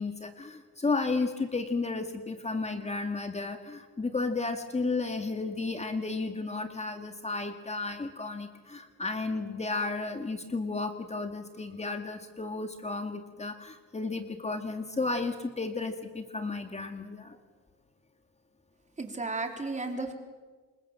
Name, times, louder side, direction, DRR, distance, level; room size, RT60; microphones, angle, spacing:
voice 1, 0.0-17.4, left 3 dB, 20° left, 6 dB, 2.1 m, -33 dB
voice 2, 19.0-20.1, right 3 dB, 25° right, 4 dB, 4.1 m, -33 dB
28.0 x 21.5 x 7.6 m, 1.4 s
cardioid pair, 90°, 30 cm